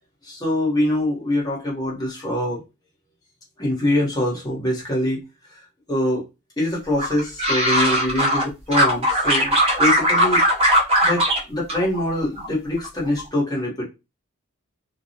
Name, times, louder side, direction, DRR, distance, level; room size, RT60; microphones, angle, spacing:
voice 1, 0.2-2.6 3.6-5.2 5.9-6.3 6.6-10.4 11.0-13.9, left 1 dB, 20° left, -4 dB, 0.9 m, -24 dB
sound 1, 7.0-8.4 8.7-11.4 11.7-12.5 12.8-13.2, equal, 25° right, 0.6 m, -19 dB
2.3 x 2.1 x 2.7 m, 0.25 s
head